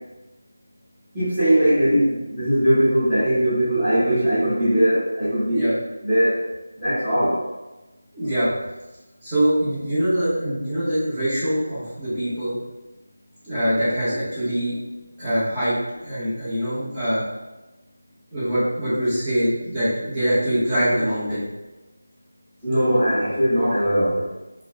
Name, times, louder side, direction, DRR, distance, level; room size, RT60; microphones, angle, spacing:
voice 1, 1.1-5.7 6.0-6.4 6.8-7.4 22.6-24.2, equal, ahead, -24 dB, 1.1 m, -20 dB
voice 2, 8.1-8.5 9.2-12.6 13.4-14.7 15.2-15.7 16.0-17.2 18.3-21.4, equal, 20° right, -12 dB, 1.5 m, -23 dB
4.4 x 2.4 x 2.7 m, 1.1 s
figure-of-eight pair, 170°, 0 cm